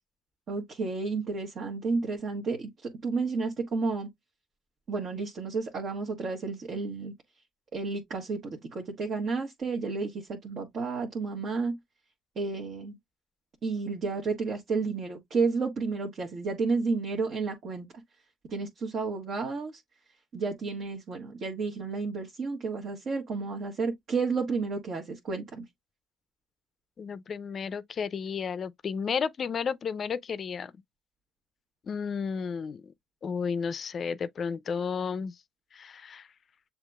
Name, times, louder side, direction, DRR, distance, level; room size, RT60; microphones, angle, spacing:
voice 1, 0.5-4.1 4.9-7.1 7.7-11.8 12.3-13.0 13.6-17.9 18.5-19.8 20.3-25.6, right 4 dB, 55° right, 1.3 m, -31 dB
voice 2, 27.0-30.7 31.8-32.9 33.2-35.4 35.7-36.3, left 6 dB, 45° left, 0.4 m, -32 dB
7.2 x 2.9 x 2.3 m
supercardioid pair, 80°, 0 cm